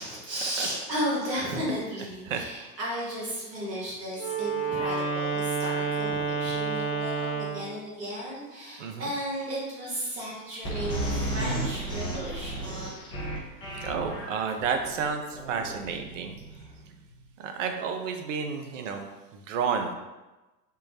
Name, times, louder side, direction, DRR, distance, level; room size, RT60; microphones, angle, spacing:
voice 1, 0.0-12.8 16.5-16.7, equal, 85° right, -6 dB, 1.1 m, -34 dB
voice 2, 0.6-0.9 1.5-1.8 2.2-2.4 4.8-5.0 8.8-9.1 13.8-16.4 17.4-19.9, right 6 dB, 55° right, 5 dB, 0.5 m, -31 dB
Wind instrument woodwind instrument, 4.1-7.7, right 4 dB, 30° left, 0.7 m, -29 dB
sound 1, 10.6-17.1, right 1 dB, 10° left, 0.3 m, -33 dB
3.6 x 2.0 x 2.8 m, 1.1 s
figure-of-eight pair, 90°, 48 cm